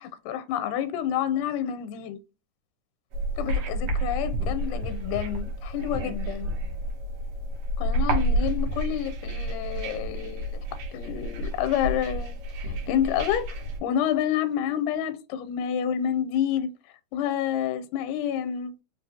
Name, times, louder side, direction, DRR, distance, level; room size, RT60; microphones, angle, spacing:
voice 1, 0.0-2.2 3.4-6.5 7.8-10.6 10.9-12.4 12.6-13.5 13.8-16.7 17.1-18.7, left 9 dB, 85° left, 2.1 m, -28 dB
sound 1, 3.1-13.8, right 1 dB, 70° right, 2.3 m, -30 dB
5.1 x 2.9 x 2.7 m
omnidirectional pair, 3.5 m